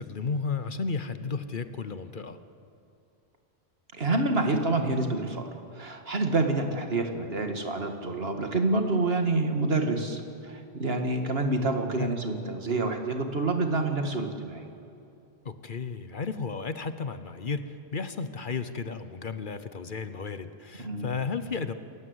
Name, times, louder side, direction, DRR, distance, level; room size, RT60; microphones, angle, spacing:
voice 1, 0.0-2.4 12.0-12.1 15.4-21.7, left 5 dB, 50° left, 11 dB, 1.0 m, -33 dB
voice 2, 3.9-5.4 5.7-14.6 20.8-21.1, right 2 dB, 65° right, 5 dB, 2.2 m, -27 dB
28.0 x 15.0 x 8.1 m, 2.7 s
omnidirectional pair, 1.1 m